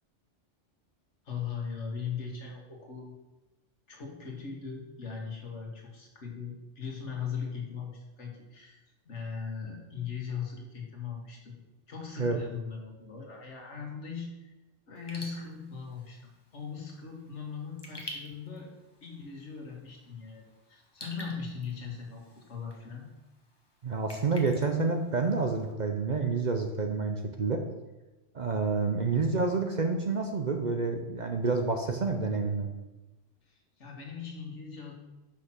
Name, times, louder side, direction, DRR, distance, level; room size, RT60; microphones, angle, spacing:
voice 1, 1.3-3.1 3.9-8.8 9.1-11.6 11.9-14.5 14.9-18.7 19.0-23.1 33.5-34.9, left 6 dB, 75° left, 0 dB, 1.9 m, -39 dB
Raindrop / Drip, 14.9-25.7, left 1 dB, 20° left, 1.2 m, -50 dB
voice 2, 23.8-27.6 28.3-32.7, right 4 dB, 45° right, 4 dB, 0.7 m, -28 dB
6.0 x 5.7 x 5.9 m, 1.1 s
omnidirectional pair, 1.2 m